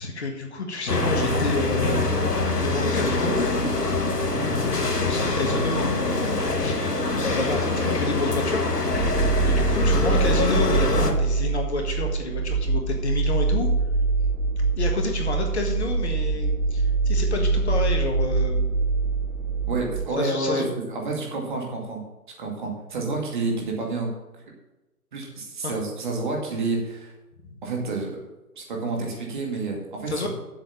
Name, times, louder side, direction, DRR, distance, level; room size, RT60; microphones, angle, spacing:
voice 1, 0.0-3.4 5.0-6.8 7.1-8.9 9.5-13.7 14.7-18.7 20.1-20.7 25.6-25.7 27.4-27.6 30.1-30.3, left 2 dB, 45° left, 2 dB, 1.8 m, -29 dB
sound 1, 0.9-11.1, left 3 dB, 90° left, 1.7 m, -24 dB
voice 2, 4.0-4.4 19.7-20.6 20.9-22.0 22.4-24.1 25.1-27.1 27.6-28.2 28.5-30.3, right 3 dB, 30° right, 0 dB, 2.3 m, -29 dB
sound 2, 8.9-20.1, right 3 dB, 55° right, 1.0 m, -24 dB
7.7 x 7.2 x 7.1 m, 1.0 s
figure-of-eight pair, 150°, 47 cm